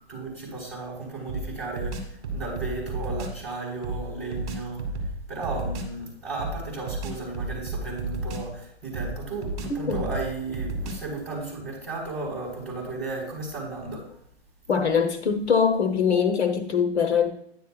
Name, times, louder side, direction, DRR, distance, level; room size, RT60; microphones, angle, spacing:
voice 1, 0.1-5.0 5.3-14.2, right 3 dB, ahead, -10 dB, 3.7 m, -34 dB
sound 1, 1.3-3.4 3.8-6.0 6.4-8.6 8.9-11.2, right 2 dB, 25° right, 1.6 m, -33 dB
voice 2, 9.7-10.0 14.7-17.3, left 6 dB, 75° left, 7 dB, 1.1 m, -23 dB
10.5 x 9.7 x 2.4 m, 0.66 s
hypercardioid pair, 165°, 34 cm